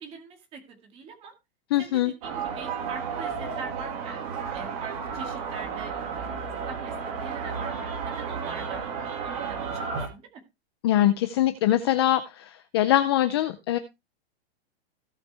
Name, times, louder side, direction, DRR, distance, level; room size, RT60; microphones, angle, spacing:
voice 1, 0.0-1.3 1.8-4.2 4.5-5.9 6.7-8.9 9.2-10.4, right 5 dB, 20° right, 4 dB, 2.1 m, -43 dB
voice 2, 1.7-2.1 10.8-13.8, left 13 dB, 25° left, 10 dB, 0.5 m, -23 dB
sound 1, 2.2-10.1, right 6 dB, 35° right, 2.5 m, -33 dB
17.0 x 5.9 x 3.3 m, 0.24 s
supercardioid pair, 170°, 32 cm